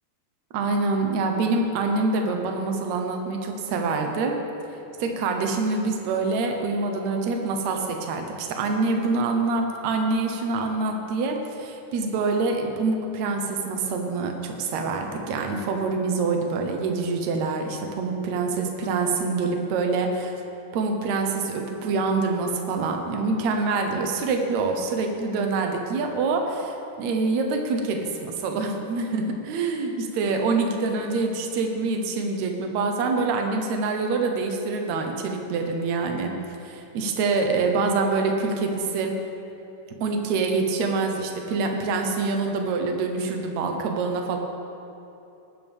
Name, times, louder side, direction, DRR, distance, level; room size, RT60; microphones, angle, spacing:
voice 1, 0.5-4.4 5.0-20.4 20.7-36.3 36.6-39.1 40.0-44.4, right 3 dB, 65° right, 3 dB, 1.8 m, -25 dB
19.0 x 10.5 x 3.6 m, 3.0 s
omnidirectional pair, 4.4 m